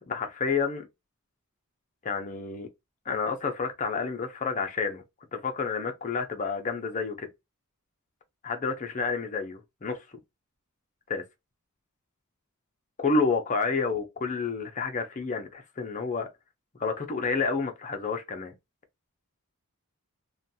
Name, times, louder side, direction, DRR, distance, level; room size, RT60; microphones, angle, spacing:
voice 1, 0.1-0.9 2.0-2.7 3.1-5.0 5.3-7.3 8.4-10.0 11.1-11.2 13.0-16.3 16.8-18.5, left 4 dB, 35° left, 0.5 m, -29 dB
2.5 x 2.2 x 2.6 m
head